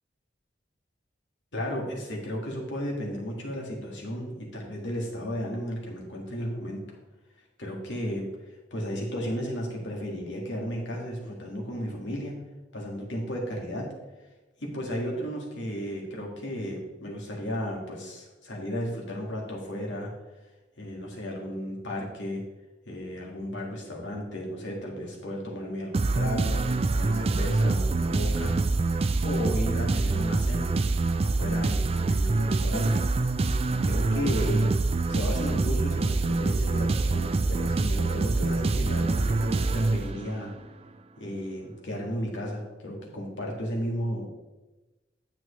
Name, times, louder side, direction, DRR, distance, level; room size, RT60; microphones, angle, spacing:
voice 1, 1.5-7.0 7.6-12.4 12.7-13.9 14.6-20.1 20.8-22.4 22.9-26.6 27.0-28.6 29.2-30.7 31.2-33.0 33.3-33.4 33.8-34.7 35.1-40.5 41.2-44.3, equal, 85° left, -1 dB, 2.0 m, -34 dB
sound 1, 25.9-40.5, right 3 dB, 35° right, 0.4 m, -25 dB
9.2 x 7.6 x 3.2 m, 1.1 s
head